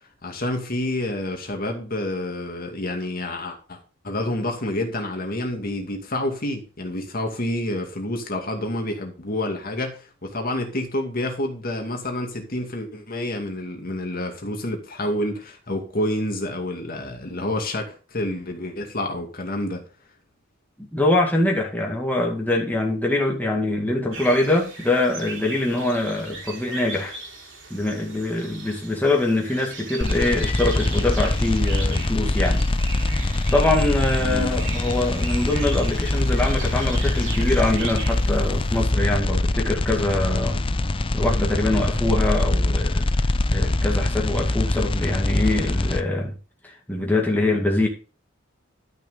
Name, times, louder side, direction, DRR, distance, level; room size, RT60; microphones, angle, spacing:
voice 1, 0.2-3.8 4.0-19.8 34.2-34.5, left 1 dB, 45° left, 2.3 m, -28 dB
voice 2, 20.8-27.2 27.7-32.6 33.0-33.1 33.5-40.7 41.1-43.1 43.5-46.4 46.6-47.9, left 2 dB, 10° left, 2.1 m, -23 dB
sound 1, 24.1-38.9, right 3 dB, 65° right, 3.3 m, -38 dB
sound 2, 30.0-46.0, left 2 dB, 25° left, 0.5 m, -23 dB
12.0 x 6.4 x 3.9 m
head